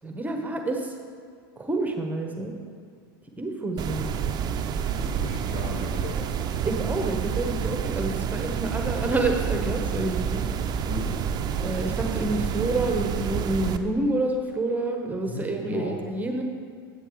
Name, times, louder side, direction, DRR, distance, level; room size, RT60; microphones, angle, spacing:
voice 1, 0.0-1.0 1.6-2.5 3.4-4.1 6.6-10.4 11.6-16.4, right 2 dB, 15° right, 3 dB, 1.0 m, -28 dB
sound 1, 3.8-13.8, right 7 dB, 35° right, 0.5 m, -29 dB
voice 2, 4.9-6.2 10.9-11.1 15.3-16.0, left 3 dB, 65° left, 0 dB, 1.6 m, -35 dB
8.9 x 8.6 x 3.1 m, 2.1 s
hypercardioid pair, 90°, 12 cm